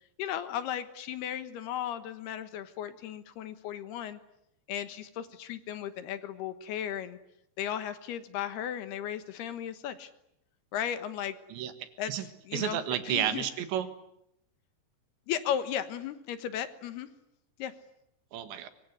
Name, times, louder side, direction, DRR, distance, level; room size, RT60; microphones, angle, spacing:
voice 1, 0.2-4.2 4.7-7.2 7.6-10.1 10.7-11.3 12.0-13.5 15.3-17.1 17.6-17.7, left 10 dB, 70° left, 11 dB, 3.0 m, -35 dB
voice 2, 11.5-12.3 12.5-13.9 18.3-18.7, right 10 dB, 85° right, 10 dB, 4.0 m, -32 dB
24.5 x 23.5 x 9.6 m, 0.77 s
omnidirectional pair, 5.2 m